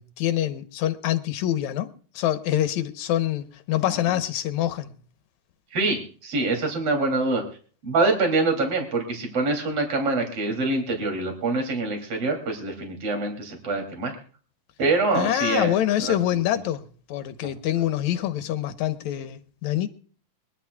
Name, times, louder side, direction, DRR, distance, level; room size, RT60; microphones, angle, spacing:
voice 1, 0.0-5.0 15.1-19.9, left 12 dB, 70° left, 2.2 m, -26 dB
voice 2, 5.7-7.4 7.8-14.1 14.8-15.7 16.0-16.2, right 3 dB, 50° right, 3.9 m, -25 dB
23.5 x 11.5 x 2.3 m
omnidirectional pair, 3.6 m